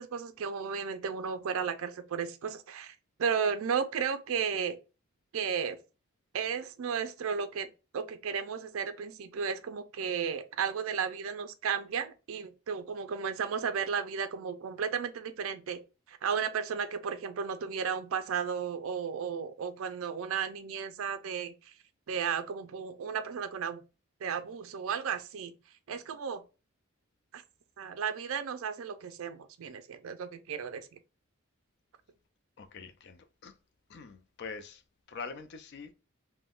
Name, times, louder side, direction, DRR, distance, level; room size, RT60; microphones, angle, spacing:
voice 1, 0.0-4.8 5.3-5.8 6.3-7.7 7.9-15.8 16.1-21.7 22.1-23.8 24.2-25.5 25.9-26.4 27.3-27.4 27.8-30.9, right 6 dB, 70° right, 0.4 m, -34 dB
voice 2, 32.6-33.6 33.9-34.8 35.1-35.9, left 4 dB, 50° left, 0.4 m, -44 dB
3.5 x 2.1 x 2.3 m
head